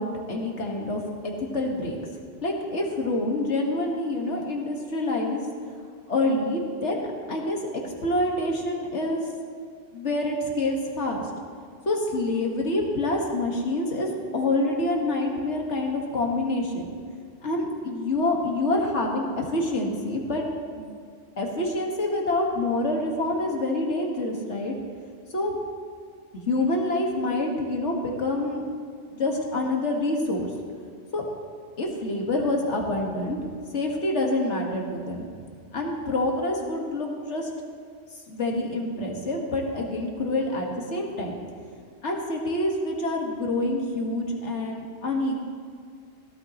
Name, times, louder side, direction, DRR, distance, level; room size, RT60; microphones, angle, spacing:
voice 1, 0.0-2.0 2.4-5.4 6.1-7.6 7.8-9.2 9.9-11.2 11.9-16.9 17.4-20.4 20.7-20.9 21.4-24.8 25.3-25.6 26.5-28.6 29.1-30.5 31.1-31.3 31.8-33.4 33.7-35.3 35.7-37.5 38.3-41.4 42.0-45.5, left 2 dB, 75° left, 0 dB, 1.9 m, -27 dB
16.5 x 13.0 x 3.0 m, 2.3 s
omnidirectional pair, 1.2 m